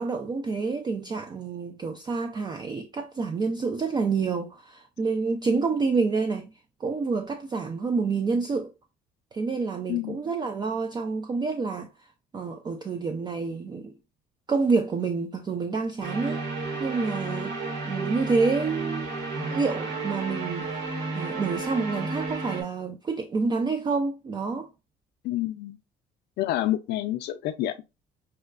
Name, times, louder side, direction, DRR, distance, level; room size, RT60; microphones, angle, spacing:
voice 1, 0.0-6.5 6.8-8.7 9.3-11.9 12.3-13.9 14.5-16.4 16.8-17.6 17.9-19.1 19.5-20.8 21.1-24.7, right 4 dB, 25° right, 0.4 m, -28 dB
voice 2, 9.9-10.2 25.2-25.8 26.4-27.8, left 14 dB, 75° left, 0.5 m, -28 dB
sound 1, 16.0-22.6, right 3 dB, 90° right, 1.2 m, -32 dB
5.5 x 2.2 x 2.4 m
cardioid pair, 110°, 17 cm